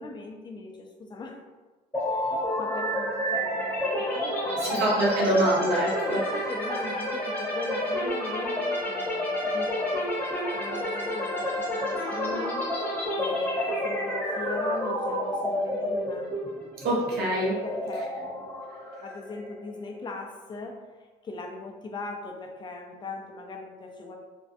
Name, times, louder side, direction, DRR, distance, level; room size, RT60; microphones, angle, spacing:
voice 1, 0.0-1.4 2.1-4.8 6.0-10.1 10.5-16.3 17.6-18.6 19.0-20.8 21.2-24.2, left 3 dB, 25° left, 2 dB, 0.4 m, -39 dB
sound 1, 1.9-19.7, left 1 dB, 10° left, 0.8 m, -30 dB
voice 2, 4.6-6.2 16.8-17.6, right 1 dB, 70° right, -4 dB, 0.6 m, -24 dB
2.5 x 2.1 x 2.4 m, 1.3 s
cardioid pair, 110°, 17 cm